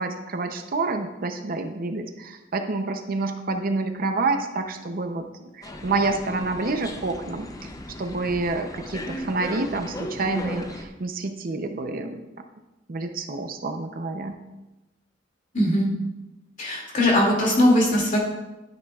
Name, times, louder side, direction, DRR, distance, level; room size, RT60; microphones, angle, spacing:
voice 1, 0.0-5.2 5.5-7.5 8.0-12.2 12.9-14.3, right 3 dB, 50° right, 6 dB, 0.6 m, -28 dB
sound 1, 5.6-10.9, left 1 dB, 20° left, 0.6 m, -36 dB
voice 2, 15.5-15.9 16.6-18.2, left 1 dB, 40° left, -2 dB, 2.4 m, -20 dB
11.5 x 9.2 x 2.4 m, 1.0 s
head